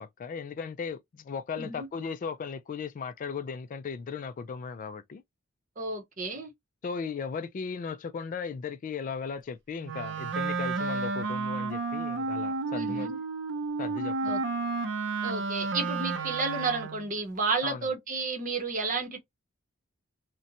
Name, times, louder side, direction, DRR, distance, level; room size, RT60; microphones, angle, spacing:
voice 1, 0.0-5.2 6.8-13.1 13.8-14.4 17.6-17.9, left 5 dB, 40° left, 0.3 m, -37 dB
voice 2, 1.6-1.9 5.8-6.5 12.7-13.2 14.2-14.4 15.2-19.2, right 3 dB, 40° right, 0.8 m, -32 dB
Wind instrument woodwind instrument, 9.8-17.1, right 3 dB, 60° right, 0.5 m, -31 dB
2.6 x 2.1 x 2.6 m
head